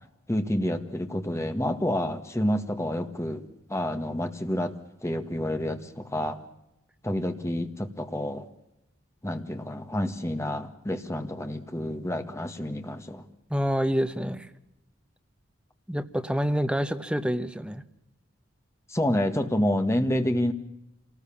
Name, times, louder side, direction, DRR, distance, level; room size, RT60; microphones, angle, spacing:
voice 1, 0.3-3.4 3.7-4.7 5.0-6.4 7.0-8.4 9.2-13.2 18.9-20.5, left 1 dB, 15° left, 7 dB, 1.7 m, -28 dB
voice 2, 13.5-14.5 15.9-17.8, equal, 5° right, 9 dB, 1.1 m, -27 dB
27.0 x 19.0 x 7.3 m, 0.87 s
head